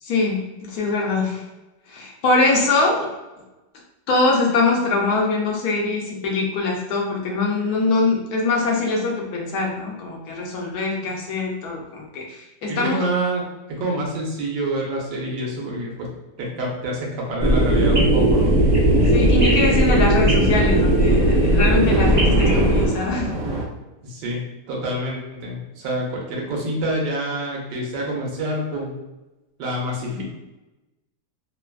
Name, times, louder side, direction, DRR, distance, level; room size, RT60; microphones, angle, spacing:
voice 1, 0.0-1.4 1.9-3.1 4.1-13.0 17.7-18.0 19.1-23.4 30.1-30.2, left 3 dB, 70° left, -1 dB, 1.0 m, -23 dB
voice 2, 12.7-13.4 13.7-16.1 16.4-18.5 24.0-29.0 29.6-30.2, right 1 dB, 85° right, -2 dB, 1.4 m, -27 dB
sound 1, 17.4-22.9, right 1 dB, 50° right, 0.4 m, -17 dB
Thunder / Rain, 18.4-23.7, right 2 dB, 65° right, 0.9 m, -31 dB
3.3 x 2.1 x 2.3 m, 1.0 s
omnidirectional pair, 1.8 m